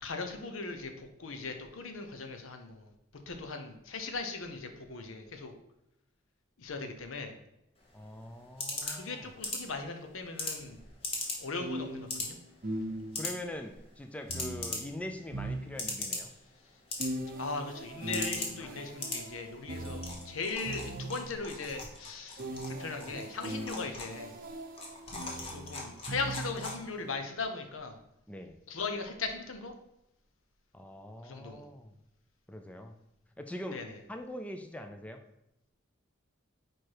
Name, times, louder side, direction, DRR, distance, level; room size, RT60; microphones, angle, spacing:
voice 1, 0.0-2.9 3.3-5.5 6.6-7.3 8.8-10.8 11.1-12.4 17.3-24.4 25.5-28.0 28.7-29.7 31.2-31.6 33.7-33.9, left 4 dB, 80° left, 6 dB, 0.8 m, -39 dB
sound 1, 7.8-27.1, left 2 dB, 30° left, 1.1 m, -41 dB
voice 2, 7.9-9.3 13.2-16.3 18.6-18.8 28.3-28.6 30.7-31.9 32.5-33.0 33.4-35.2, left 1 dB, 5° left, 6 dB, 0.3 m, -43 dB
sound 2, 10.6-10.7 11.6-13.4 14.3-16.2 17.0-21.5 22.4-26.9, right 1 dB, 45° right, 0.7 m, -40 dB
4.7 x 4.5 x 4.7 m, 0.85 s
head